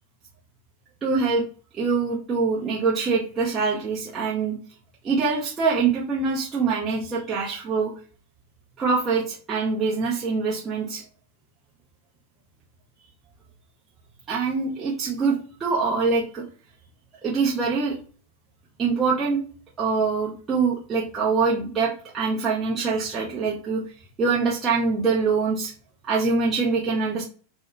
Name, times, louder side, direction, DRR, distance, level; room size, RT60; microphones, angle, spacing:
voice 1, 1.0-1.4 1.8-4.5 5.0-7.9 8.8-11.0 14.3-16.4 17.2-18.0 18.8-19.4 19.8-23.8 24.2-25.7 26.0-27.2, right 4 dB, 20° right, -5 dB, 0.7 m, -24 dB
2.2 x 2.0 x 3.1 m, 0.41 s
figure-of-eight pair, 90°, 0 cm